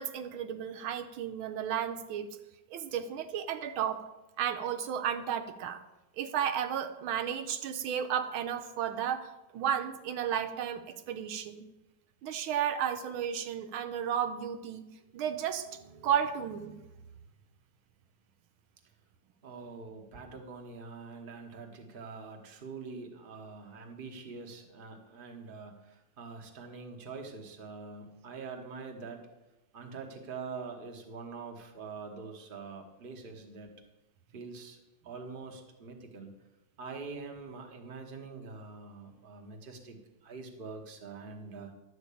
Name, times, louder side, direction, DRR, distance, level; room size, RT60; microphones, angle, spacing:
voice 1, 0.0-2.4 2.7-4.0 4.4-5.8 6.2-11.6 12.2-14.8 15.1-16.8, right 9 dB, 85° right, 8 dB, 1.6 m, -33 dB
voice 2, 19.4-29.2 29.7-33.7 34.3-36.3 36.8-41.7, right 4 dB, 30° right, 3 dB, 1.2 m, -44 dB
11.5 x 4.7 x 8.4 m, 0.99 s
omnidirectional pair, 2.2 m